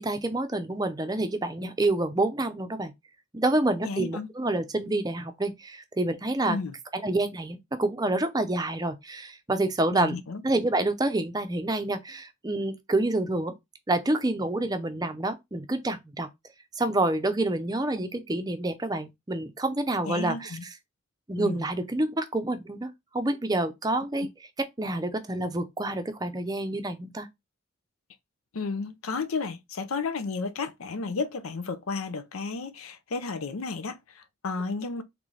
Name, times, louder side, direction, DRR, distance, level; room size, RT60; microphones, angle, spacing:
voice 1, 0.0-2.9 3.3-6.6 6.9-10.2 10.4-13.6 13.9-16.3 16.8-20.6 21.3-24.3 24.8-27.3, right 2 dB, 20° right, 0.5 m, -28 dB
voice 2, 3.8-4.3 6.5-6.7 9.9-10.4 20.0-20.6 21.4-21.6 28.5-35.0, left 4 dB, 90° left, 0.6 m, -33 dB
3.8 x 3.2 x 3.2 m
head